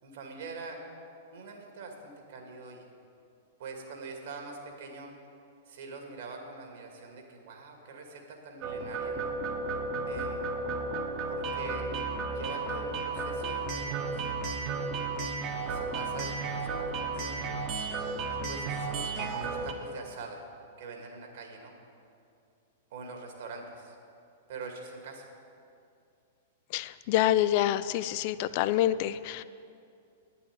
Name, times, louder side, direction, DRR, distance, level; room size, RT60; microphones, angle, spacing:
voice 1, 0.0-0.8 1.3-2.9 3.6-5.1 5.7-9.3 10.1-10.5 11.3-11.9 12.3-14.4 15.5-17.5 18.3-20.4 20.8-21.7 22.9-24.0 24.5-25.3, right 4 dB, 60° right, 2 dB, 2.1 m, -44 dB
sound 1, 8.6-19.7, right 3 dB, 40° right, 1.2 m, -33 dB
voice 2, 26.7-29.4, left 13 dB, 45° left, 15 dB, 0.3 m, -27 dB
9.9 x 7.0 x 9.1 m, 2.5 s
figure-of-eight pair, 100°, 0 cm